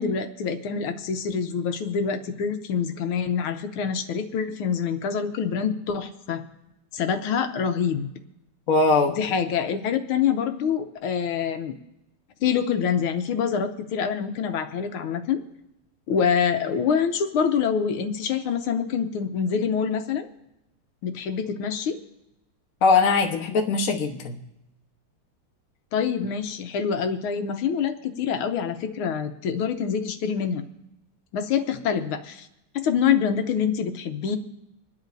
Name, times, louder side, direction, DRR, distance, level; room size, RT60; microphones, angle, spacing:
voice 1, 0.0-6.4 6.9-8.1 9.1-11.7 12.4-15.4 16.1-20.3 21.0-22.0 25.9-30.6 31.3-32.5 32.7-34.4, left 7 dB, 80° left, 7 dB, 1.6 m, -26 dB
voice 2, 8.7-9.2 22.8-24.4, left 4 dB, 50° left, 2 dB, 1.3 m, -21 dB
26.5 x 10.5 x 2.6 m, 0.89 s
omnidirectional pair, 2.3 m